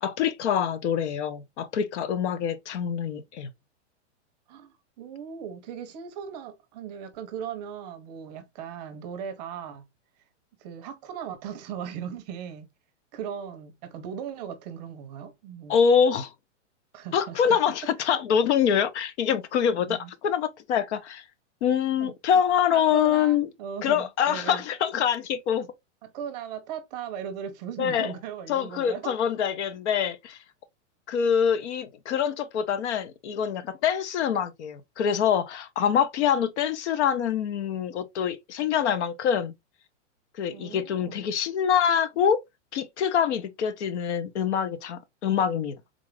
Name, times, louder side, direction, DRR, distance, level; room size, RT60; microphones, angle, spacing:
voice 1, 0.0-3.5 15.7-16.3 17.1-20.0 20.2-21.2 21.6-23.5 23.8-25.7 27.8-28.1 28.5-30.4 31.1-39.5 40.4-42.4 42.7-45.7, left 8 dB, 65° left, 0.7 m, -25 dB
voice 2, 4.5-9.8 10.6-12.7 13.1-15.8 16.9-17.8 19.9-20.1 22.0-22.1 22.7-24.6 26.0-29.1 40.5-41.3, right 8 dB, 35° right, 0.6 m, -38 dB
3.8 x 2.4 x 3.1 m
supercardioid pair, 160°, 37 cm